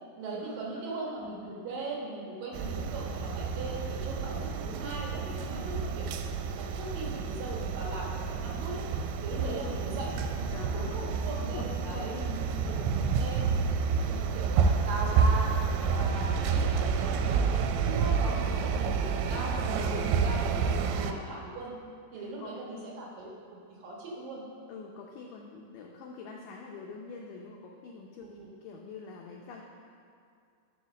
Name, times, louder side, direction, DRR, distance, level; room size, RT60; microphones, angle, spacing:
voice 1, 0.2-6.1 6.4-8.8 9.2-12.8 13.2-13.5 14.1-21.7 22.1-23.4 23.7-24.4 28.4-28.5, right 2 dB, 65° right, -3 dB, 2.8 m, -39 dB
sound 1, 2.5-21.1, right 5 dB, 85° right, 2.7 m, -29 dB
voice 2, 5.5-5.8 9.3-9.8 10.5-11.1 11.4-12.4 12.7-13.3 14.1-14.4 19.8-20.2 20.7-20.8 22.1-22.9 24.7-28.3 28.6-29.6, left 4 dB, 85° left, 0 dB, 1.9 m, -45 dB
11.5 x 5.0 x 6.3 m, 2.4 s
omnidirectional pair, 4.7 m